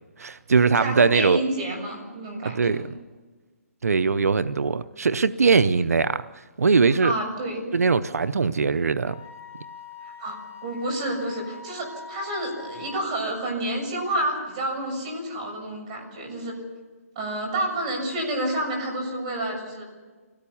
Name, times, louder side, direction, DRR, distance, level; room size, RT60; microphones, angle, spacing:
voice 1, 0.2-1.4 2.4-2.8 3.8-6.3 6.6-7.1 7.7-9.2, right 5 dB, 85° right, 13 dB, 0.7 m, -21 dB
voice 2, 0.8-2.8 7.0-7.6 10.2-16.6 17.2-19.8, right 1 dB, 30° right, 1 dB, 6.9 m, -29 dB
Wind instrument woodwind instrument, 9.0-13.0, left 5 dB, 65° right, 5.9 m, -43 dB
25.0 x 17.5 x 7.1 m, 1.4 s
hypercardioid pair, 160°, 8 cm